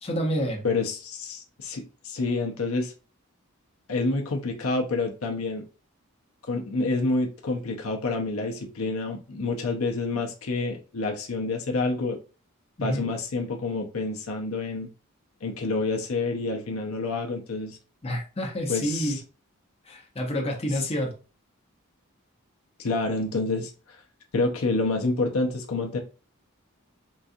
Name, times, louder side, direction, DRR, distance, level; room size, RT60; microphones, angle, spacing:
voice 1, 0.0-0.6 12.8-13.1 18.0-19.2 19.8-21.2, equal, 30° left, 0.9 m, -28 dB
voice 2, 0.6-2.9 3.9-5.6 6.5-12.2 12.8-14.9 15.4-17.8 18.7-19.2 22.8-23.7 24.3-26.0, left 3 dB, 80° left, 0.7 m, -28 dB
3.9 x 2.4 x 2.6 m
head